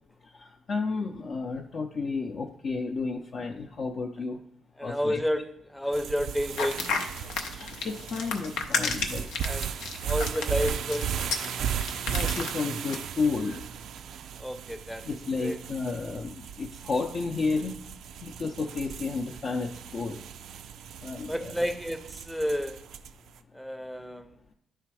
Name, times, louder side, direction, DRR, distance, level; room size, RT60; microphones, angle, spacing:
voice 1, 0.2-4.4 4.8-5.2 7.5-9.3 12.1-13.7 15.0-17.8 18.2-20.2 21.0-21.5, left 4 dB, 50° left, 0.6 m, -32 dB
voice 2, 4.8-6.9 9.4-9.7 10.0-11.2 14.4-15.1 15.4-15.6 21.3-22.8 23.5-24.3, equal, 5° left, 0.6 m, -30 dB
sound 1, 5.9-23.3, right 8 dB, 75° right, 0.3 m, -36 dB
sound 2, 6.5-13.0, left 5 dB, 90° left, 0.7 m, -32 dB
10.0 x 3.4 x 4.7 m
cardioid pair, 90°, 0 cm